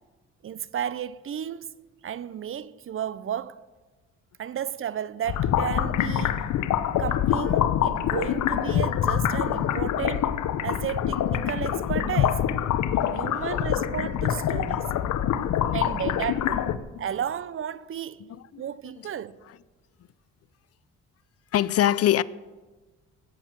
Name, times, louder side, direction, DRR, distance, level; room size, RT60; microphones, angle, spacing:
voice 1, 0.4-1.7 2.0-3.6 4.4-6.4 7.0-10.4 10.6-12.5 13.1-14.9 15.7-16.6 17.0-18.3 18.6-19.3, right 9 dB, 45° right, 0.6 m, -33 dB
sound 1, 5.3-16.8, left 10 dB, 70° left, 0.8 m, -25 dB
voice 2, 12.7-13.0 13.3-13.6 15.3-15.7 18.5-18.6 21.5-22.2, left 12 dB, 55° left, 0.5 m, -25 dB
15.0 x 7.8 x 7.5 m
cardioid pair, 90°, 30 cm